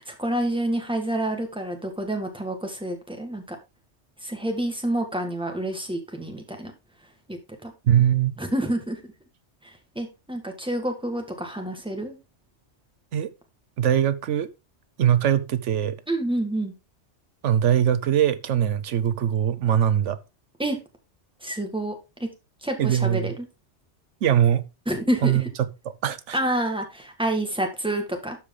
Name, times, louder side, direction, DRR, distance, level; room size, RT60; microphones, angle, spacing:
voice 1, 0.0-3.6 4.2-6.7 7.3-7.7 8.4-9.1 9.6-12.2 16.1-16.7 20.6-20.8 21.4-22.3 22.6-23.5 24.9-25.5 26.3-28.4, right 1 dB, 5° right, 1.8 m, -28 dB
voice 2, 7.8-8.4 13.1-13.3 13.8-14.5 15.0-16.0 17.4-20.2 22.8-23.3 24.2-24.6 25.2-25.7 26.0-26.4, right 10 dB, 85° right, 1.1 m, -21 dB
12.5 x 4.9 x 3.8 m
omnidirectional pair, 1.2 m